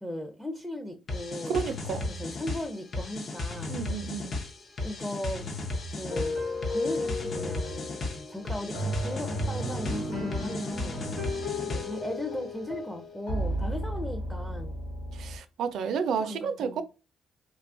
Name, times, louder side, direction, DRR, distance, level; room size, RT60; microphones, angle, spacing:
voice 1, 0.0-1.6 2.1-3.9 4.8-5.5 5.9-6.4 6.7-7.8 8.1-11.0 11.6-14.7 16.2-16.8, left 1 dB, ahead, 0.5 m, -37 dB
sound 1, 1.1-12.1, left 2 dB, 50° left, 0.6 m, -35 dB
voice 2, 1.5-2.1 3.7-4.4 15.1-16.8, right 6 dB, 75° right, 0.4 m, -31 dB
sound 2, 6.0-15.4, left 1 dB, 85° left, 1.3 m, -34 dB
2.8 x 2.2 x 2.5 m
cardioid pair, 90°, 0 cm